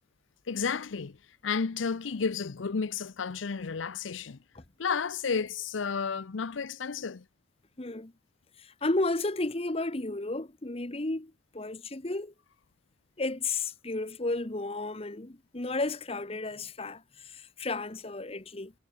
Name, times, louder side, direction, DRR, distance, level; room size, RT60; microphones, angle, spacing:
voice 1, 0.5-1.2 1.4-4.4 4.8-7.2, left 5 dB, 85° left, 0.6 m, -32 dB
voice 2, 7.8-8.1 8.6-12.3 13.2-18.7, left 2 dB, 30° left, 1.1 m, -33 dB
head